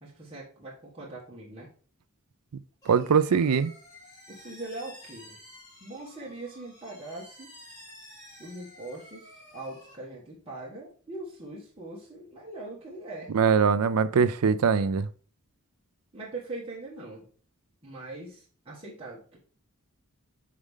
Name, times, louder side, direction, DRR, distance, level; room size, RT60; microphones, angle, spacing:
voice 1, 0.0-1.7 4.3-5.4 5.8-7.5 8.4-9.3 9.5-13.3 16.1-17.3 17.8-19.4, right 2 dB, 25° right, 1.7 m, -41 dB
sound 1, 2.8-9.9, left 1 dB, 15° left, 3.5 m, -51 dB
voice 2, 2.9-3.7 13.3-15.1, right 6 dB, 90° right, 0.5 m, -22 dB
6.4 x 4.8 x 3.6 m
head